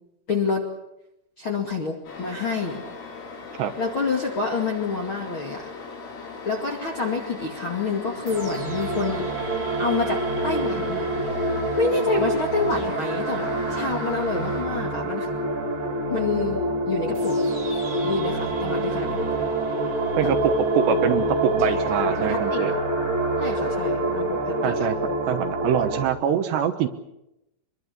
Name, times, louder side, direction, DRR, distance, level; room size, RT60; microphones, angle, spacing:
voice 1, 0.3-0.6 1.4-2.8 3.8-5.7 6.5-9.2 9.8-11.1 11.8-15.3 16.1-17.4 18.0-19.3 20.2-20.3 22.1-22.6 23.4-24.9, left 4 dB, 40° left, -1 dB, 1.9 m, -28 dB
sound 1, 2.0-14.6, left 4 dB, 75° left, 6.3 m, -39 dB
sound 2, 8.3-26.0, right 1 dB, 30° right, 3.0 m, -26 dB
voice 2, 20.8-22.7 24.6-26.9, right 9 dB, 70° right, 8 dB, 3.0 m, -24 dB
25.5 x 22.5 x 6.7 m, 0.88 s
omnidirectional pair, 5.6 m